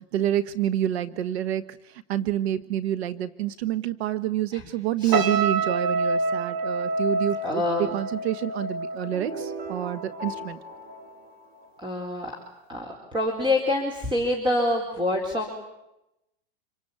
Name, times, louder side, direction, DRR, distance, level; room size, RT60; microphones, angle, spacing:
voice 1, 0.0-10.6, right 12 dB, 90° right, 13 dB, 1.3 m, -28 dB
sound 1, 5.1-10.4 10.7-11.0, right 3 dB, 70° right, 2.6 m, -28 dB
voice 2, 7.4-7.9 11.8-12.3 12.7-15.6, left 1 dB, 15° right, 2 dB, 4.4 m, -26 dB
sound 2, 9.1-12.2, right 1 dB, 30° right, 3.1 m, -38 dB
27.0 x 24.0 x 8.8 m, 0.89 s
supercardioid pair, 130°, 31 cm